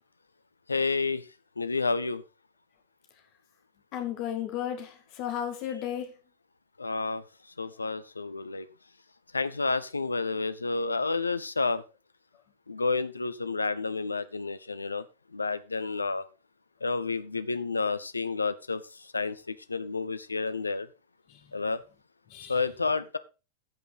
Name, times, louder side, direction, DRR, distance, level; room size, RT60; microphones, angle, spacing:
voice 1, 0.7-1.2 1.6-2.2 6.8-7.2 7.6-8.7 9.3-11.8 12.7-15.0 15.3-16.2 16.8-20.9 21.5-21.8 22.5-23.2, left 4 dB, 80° left, 15 dB, 0.7 m, -30 dB
voice 2, 3.9-6.1 21.3-21.4 22.3-22.6, left 10 dB, 45° left, 5 dB, 2.2 m, -34 dB
15.0 x 5.5 x 4.1 m, 0.30 s
figure-of-eight pair, 90°, 0 cm